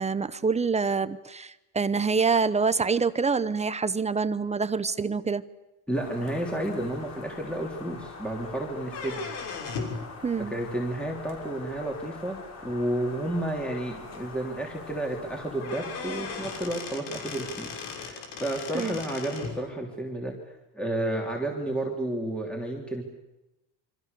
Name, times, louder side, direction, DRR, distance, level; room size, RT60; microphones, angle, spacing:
voice 1, 0.0-5.4 10.2-10.5 18.7-19.0, right 5 dB, 15° right, 13 dB, 0.8 m, -26 dB
voice 2, 5.9-9.3 10.4-12.4 12.6-23.0, right 1 dB, 5° left, 0 dB, 3.3 m, -31 dB
sound 1, 6.0-16.7, left 4 dB, 40° left, 6.2 m, -44 dB
sound 2, 8.8-10.0 11.8-11.9 12.8-12.9 13.3-13.4 13.7-13.8 15.2-15.3 15.6-19.6, left 5 dB, 85° left, 6.5 m, -37 dB
28.5 x 25.0 x 6.8 m, 0.96 s
cardioid pair, 150°, 42 cm